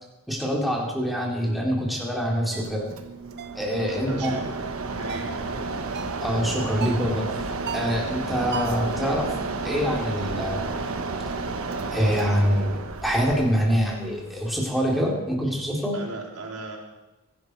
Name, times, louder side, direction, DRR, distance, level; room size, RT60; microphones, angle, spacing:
voice 1, 0.3-2.9 3.6-4.3 6.2-7.3 7.7-9.3 9.6-10.6 11.9-16.0, equal, ahead, -3 dB, 3.8 m, -25 dB
sound 1, 2.5-2.7 3.4-3.6 4.2-4.5 5.1-5.4 5.9-6.3 6.8-7.1 7.7-8.0 8.5-8.9, right 7 dB, 50° right, 0.8 m, -35 dB
Mechanisms, 2.5-14.9, right 3 dB, 65° right, 1.3 m, -32 dB
voice 2, 3.9-4.5 4.9-5.5 15.9-16.8, right 2 dB, 85° right, -1 dB, 3.9 m, -37 dB
23.5 x 12.0 x 4.8 m, 1.0 s
head